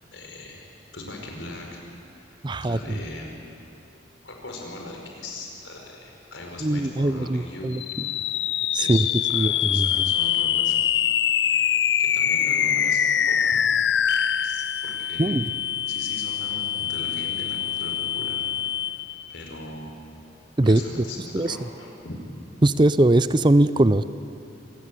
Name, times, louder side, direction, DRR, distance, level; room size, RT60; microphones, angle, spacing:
voice 1, 0.1-0.6 0.9-1.8 2.2-3.3 4.2-7.7 8.7-10.8 12.0-13.4 14.4-15.4 15.9-18.4 19.3-20.0 20.6-22.2, left 2 dB, 90° left, 1 dB, 5.1 m, -39 dB
voice 2, 2.4-2.8 6.6-7.8 8.7-9.1 9.3-9.9 15.2-15.4 20.6-20.8 21.3-21.6 22.6-24.0, right 1 dB, 25° right, 14 dB, 0.5 m, -20 dB
sound 1, 7.7-19.3, left 9 dB, 70° left, 0.6 m, -24 dB
26.5 x 18.5 x 8.4 m, 2.7 s
head